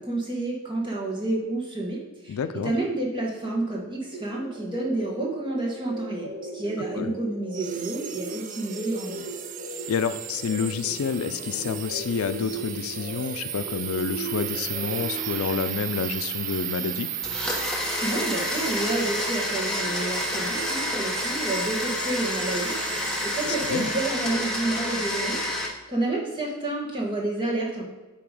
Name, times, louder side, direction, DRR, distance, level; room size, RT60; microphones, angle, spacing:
voice 1, 0.0-9.2 18.0-27.9, right 2 dB, 20° right, -2 dB, 1.3 m, -30 dB
voice 2, 2.3-2.7 7.0-7.1 9.9-17.1 23.7-23.9, left 6 dB, 80° left, 11 dB, 0.4 m, -29 dB
sound 1, 4.1-15.4, right 1 dB, 75° right, 1.2 m, -38 dB
sound 2, 7.5-25.2, right 10 dB, 40° right, 0.3 m, -36 dB
Domestic sounds home sounds, 17.2-25.7, left 1 dB, 5° left, 0.8 m, -29 dB
8.6 x 3.0 x 4.8 m, 1.2 s
head